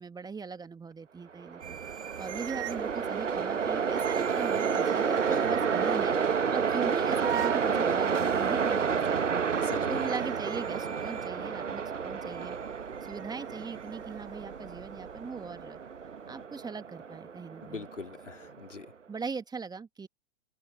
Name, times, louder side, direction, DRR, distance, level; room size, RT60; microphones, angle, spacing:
voice 1, 0.0-1.8 2.2-6.2 6.5-9.4 9.9-12.6 13.0-15.8 16.3-17.9 19.1-20.1, right 5 dB, 10° right, 1.7 m, -40 dB
Train, 1.4-18.6, right 6 dB, 80° right, 1.1 m, -30 dB
sound 1, 1.6-16.5, right 11 dB, 65° right, 2.0 m, -45 dB
voice 2, 5.3-5.7 9.6-10.1 17.6-18.9, left 4 dB, 80° left, 3.0 m, -42 dB
open air
figure-of-eight pair, 100°, 36 cm